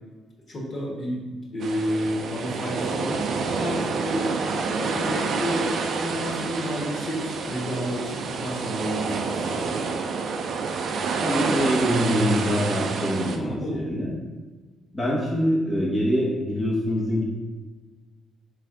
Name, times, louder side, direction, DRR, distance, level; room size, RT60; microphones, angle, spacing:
voice 1, 0.5-4.4 4.8-9.8 13.4-13.9, equal, 50° left, -4 dB, 1.4 m, -30 dB
sound 1, 1.6-13.4, right 4 dB, 60° right, 0.4 m, -28 dB
voice 2, 11.2-14.1 14.9-17.2, equal, 20° left, -6 dB, 1.0 m, -24 dB
3.4 x 3.3 x 4.8 m, 1.3 s
cardioid pair, 90°, 0 cm